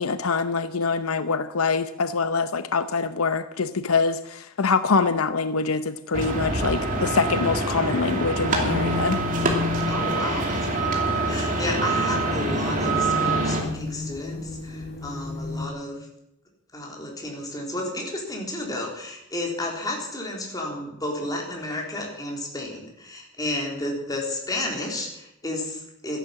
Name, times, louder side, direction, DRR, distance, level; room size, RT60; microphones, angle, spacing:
voice 1, 0.0-9.2, left 4 dB, 80° left, 12 dB, 0.8 m, -24 dB
sound 1, 6.1-13.6, right 2 dB, 40° right, 2.8 m, -25 dB
sound 2, 8.7-15.7, left 3 dB, 45° left, 1.9 m, -33 dB
voice 2, 9.9-16.0 16.7-26.2, left 1 dB, 15° left, -1 dB, 3.8 m, -32 dB
14.0 x 11.0 x 7.6 m, 0.80 s
head